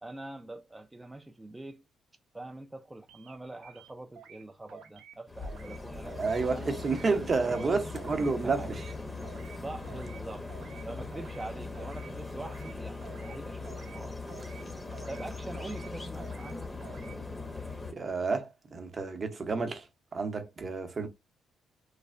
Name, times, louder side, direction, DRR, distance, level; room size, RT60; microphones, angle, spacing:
voice 1, 0.0-1.8 2.3-6.7 7.4-7.8 8.2-8.7 9.5-10.5 10.8-14.2 15.1-16.7, right 2 dB, 15° right, 0.3 m, -43 dB
sound 1, 3.1-3.4 3.6-4.4 4.7-5.2 5.4-5.8 6.1-6.4 6.7-7.0 7.3-7.7 8.0-8.3 8.6-8.9 9.2-9.6 9.8-10.2 10.5-10.8 11.1-11.5 11.7-12.1 12.4-12.7 13.0-13.4 13.6-14.0 14.3-14.6 14.9-15.3 15.5-15.9 16.2-16.5 16.8-17.1, right 8 dB, 80° right, 0.6 m, -51 dB
sound 2, 5.3-17.9, left 3 dB, 15° left, 0.6 m, -40 dB
voice 2, 6.2-8.8 17.9-19.9 20.1-21.1, right 4 dB, 40° right, 0.7 m, -30 dB
3.1 x 2.1 x 2.4 m
cardioid pair, 90°, 0 cm